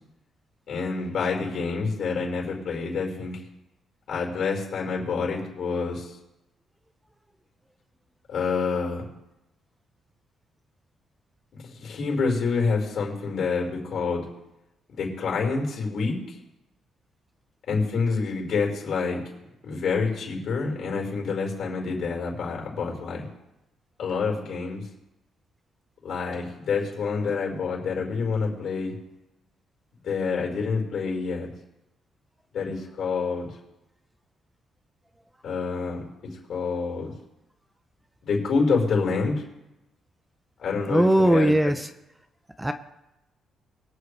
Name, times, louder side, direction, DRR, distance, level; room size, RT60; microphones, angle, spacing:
voice 1, 0.7-3.3 4.1-6.1 8.3-9.1 11.6-14.2 14.9-16.1 17.7-19.2 19.6-23.2 24.0-24.8 26.0-28.9 30.0-31.5 32.5-33.5 35.4-36.0 36.5-37.1 38.2-39.4 40.6-41.7, left 4 dB, 65° left, -1 dB, 5.1 m, -27 dB
voice 2, 40.9-41.9 42.6-42.7, right 1 dB, 10° right, 9 dB, 0.8 m, -20 dB
23.5 x 7.9 x 3.4 m, 0.92 s
cardioid pair, 90°, 0 cm